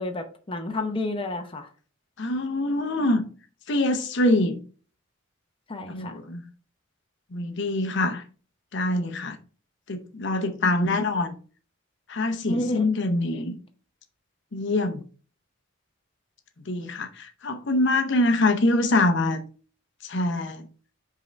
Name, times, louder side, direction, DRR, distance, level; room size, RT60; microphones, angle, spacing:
voice 1, 0.0-1.7 5.7-6.2 10.6-10.7 12.5-12.8, left 2 dB, 25° left, 0.7 m, -30 dB
voice 2, 2.2-3.2 3.7-4.6 5.9-6.4 7.3-8.2 8.7-9.4 9.9-11.3 12.1-13.6 14.5-15.0 16.7-19.4 20.0-20.6, left 2 dB, 60° left, 0.7 m, -24 dB
5.4 x 3.7 x 5.0 m
head